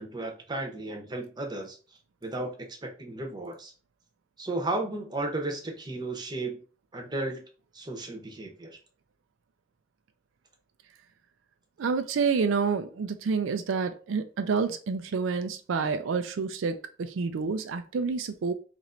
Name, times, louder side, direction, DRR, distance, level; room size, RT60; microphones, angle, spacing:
voice 1, 0.0-1.8 2.2-2.5 2.8-3.7 4.4-6.6 6.9-7.4 7.7-8.8, right 2 dB, 20° right, 2 dB, 0.8 m, -34 dB
voice 2, 11.8-18.5, right 5 dB, 85° right, 8 dB, 0.4 m, -28 dB
3.0 x 2.5 x 4.3 m, 0.37 s
head